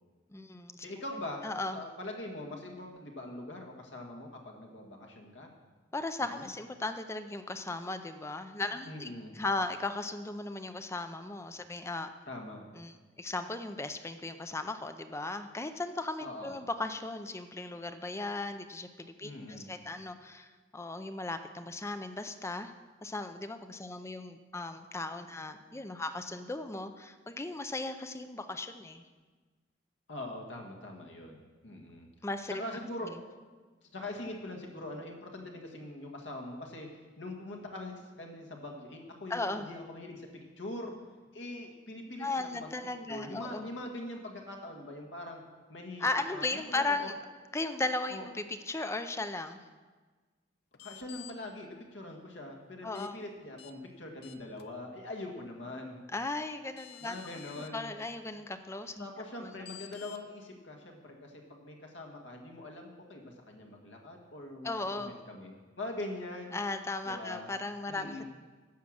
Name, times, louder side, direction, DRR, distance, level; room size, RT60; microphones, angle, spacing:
voice 1, 0.3-0.9 1.4-1.8 5.9-12.1 12.7-22.7 23.0-29.0 32.2-32.6 39.3-39.7 42.2-43.7 46.0-47.2 47.5-49.6 52.8-53.2 56.1-57.2 57.7-59.1 59.4-59.5 64.6-65.1 66.5-68.2, left 2 dB, 15° left, 9 dB, 0.5 m, -36 dB
voice 2, 0.8-1.4 1.7-5.5 6.2-6.5 8.8-9.4 12.3-12.7 16.2-16.7 19.2-19.7 30.1-32.1 32.5-33.2 33.8-36.9 37.2-40.9 41.3-42.7 43.1-45.4 45.7-47.1 48.1-48.3 50.8-56.0 57.0-57.9 59.0-66.6 67.1-67.5 67.9-68.2, left 1 dB, 75° left, 2 dB, 1.7 m, -43 dB
sound 1, 50.7-51.3 52.9-53.1 53.6-53.7 54.2-54.6 56.3-56.4 56.8-57.7 59.7-60.2, left 13 dB, 60° left, 0.7 m, -50 dB
11.0 x 7.4 x 6.4 m, 1.4 s
head